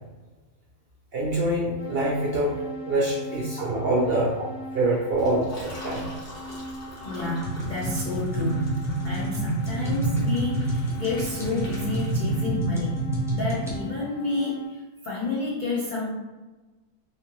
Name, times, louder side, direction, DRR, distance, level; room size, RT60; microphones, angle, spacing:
voice 1, 1.1-2.6 2.9-4.5 4.7-6.1, right 1 dB, 60° right, -4 dB, 0.6 m, -25 dB
sound 1, 1.8-14.7, equal, 30° left, 1.1 m, -39 dB
Liquid, 5.1-12.8, left 1 dB, 85° left, 1.7 m, -44 dB
voice 2, 7.0-8.8 9.0-13.0 13.3-16.1, left 3 dB, 55° left, -6 dB, 0.5 m, -30 dB
sound 2, 7.4-13.8, right 2 dB, 5° right, 0.6 m, -28 dB
3.3 x 3.2 x 2.9 m, 1.2 s
omnidirectional pair, 1.6 m